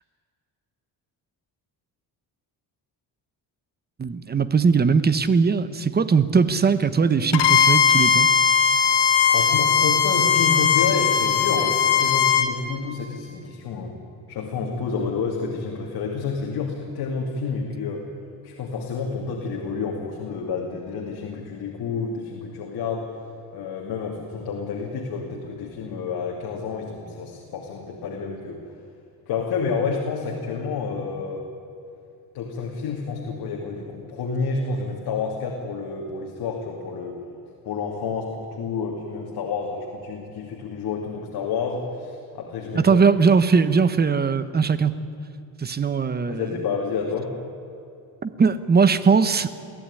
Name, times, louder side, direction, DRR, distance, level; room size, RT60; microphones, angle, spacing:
voice 1, 4.0-8.3 42.7-44.9 45.6-46.4 48.2-49.5, right 5 dB, 25° right, 13 dB, 1.0 m, -20 dB
Bowed string instrument, 7.3-12.5, left 7 dB, 85° left, 1.9 m, -19 dB
voice 2, 9.3-13.9 14.3-18.1 18.4-23.1 23.5-28.6 29.3-31.4 32.3-37.2 37.6-43.0 46.3-47.3, left 5 dB, 65° left, 0 dB, 2.7 m, -29 dB
22.5 x 15.0 x 9.8 m, 2.6 s
cardioid pair, 130°, 39 cm